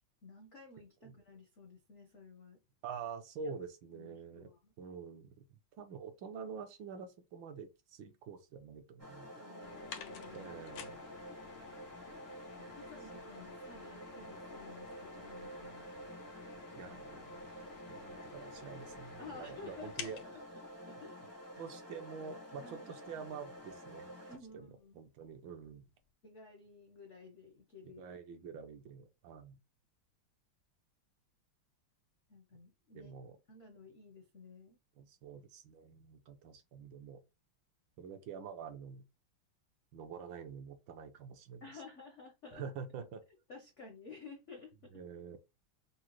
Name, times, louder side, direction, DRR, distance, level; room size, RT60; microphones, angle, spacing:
voice 1, 0.2-2.6 3.4-3.5 3.9-4.7 9.3-10.5 12.6-15.9 19.2-20.4 20.9-21.3 22.6-22.9 24.3-25.0 26.2-28.0 32.3-33.2 33.5-34.8 41.6-42.6 43.5-44.9, left 4 dB, 70° left, 0.6 m, -53 dB
voice 2, 2.8-4.5 4.8-9.3 10.3-11.0 12.7-12.8 16.8-17.5 17.9-20.2 21.6-24.1 24.5-24.7 24.9-25.9 27.8-29.6 32.9-33.4 35.0-37.2 38.0-39.0 39.9-41.6 42.5-43.2 44.9-45.4, right 6 dB, 70° right, 1.4 m, -47 dB
sound 1, 9.0-24.4, equal, 20° right, 0.3 m, -49 dB
sound 2, 9.6-21.8 22.1-22.2 23.1-23.2 23.4-23.5 24.1-24.2 24.5-24.6, left 7 dB, 90° left, 1.6 m, -53 dB
6.0 x 2.1 x 3.0 m
omnidirectional pair, 2.3 m